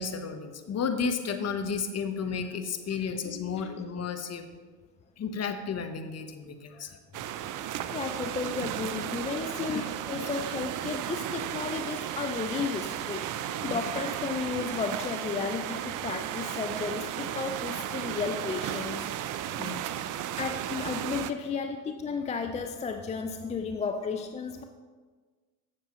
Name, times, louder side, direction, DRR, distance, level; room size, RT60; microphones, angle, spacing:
voice 1, 0.0-4.4 5.2-7.0 9.7-9.8 13.7-13.8 19.6-19.8, left 5 dB, 30° left, 7 dB, 1.1 m, -33 dB
sound 1, 7.1-21.3, right 11 dB, 40° right, 0.6 m, -34 dB
voice 2, 7.7-19.1 19.3-19.5 20.4-24.6, left 5 dB, 15° left, 6 dB, 0.4 m, -33 dB
15.0 x 6.6 x 3.1 m, 1.4 s
hypercardioid pair, 80°, 50 cm